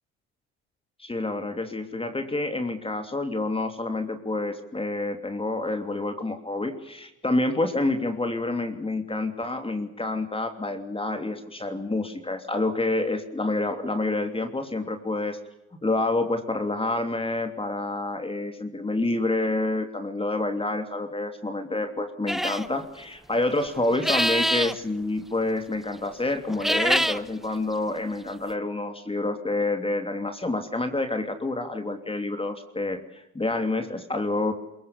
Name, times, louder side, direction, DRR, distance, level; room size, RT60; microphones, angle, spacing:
voice 1, 1.0-15.4 15.7-34.5, left 2 dB, 15° left, 7 dB, 3.0 m, -28 dB
sound 1, 22.3-22.7 23.9-24.8 26.5-27.2, equal, ahead, 1.2 m, -24 dB
22.5 x 22.5 x 8.4 m, 0.86 s
hypercardioid pair, 60°, 34 cm